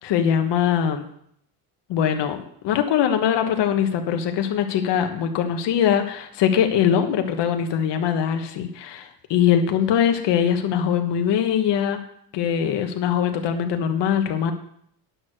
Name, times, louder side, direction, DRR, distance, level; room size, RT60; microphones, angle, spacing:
voice 1, 0.0-1.1 1.9-12.0 12.3-14.5, left 8 dB, 70° left, 6 dB, 1.4 m, -22 dB
9.6 x 6.6 x 6.5 m, 0.69 s
supercardioid pair, 90°, 45 cm